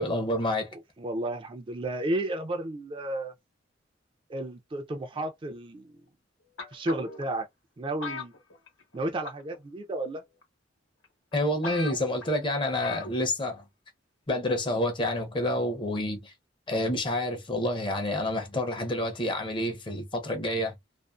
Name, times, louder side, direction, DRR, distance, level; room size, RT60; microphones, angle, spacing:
voice 1, 0.0-0.7 11.3-13.6 14.3-16.3 16.7-20.7, left 1 dB, 25° left, 0.6 m, -28 dB
voice 2, 0.7-3.3 4.3-6.0 6.7-7.5 7.8-8.3 8.9-10.2, right 1 dB, 25° right, 0.4 m, -32 dB
sound 1, 6.6-7.2 8.0-9.0 9.2-9.6 10.4-10.5 11.0-11.1 11.3-11.4 11.6-12.3 12.8-13.1 13.4-13.5, left 4 dB, 85° left, 1.0 m, -38 dB
2.5 x 2.4 x 2.3 m
head